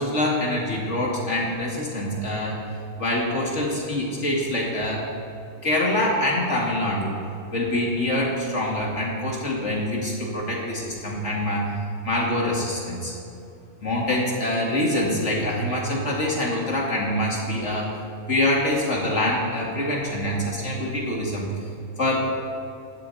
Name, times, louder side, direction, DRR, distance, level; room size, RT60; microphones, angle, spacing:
voice 1, 0.0-2.6 3.0-5.0 5.6-7.1 7.5-11.7 12.0-13.1 13.8-17.9 18.3-21.5 22.0-22.3, left 1 dB, 55° left, -2 dB, 2.8 m, -25 dB
15.5 x 12.5 x 4.2 m, 2.6 s
omnidirectional pair, 1.4 m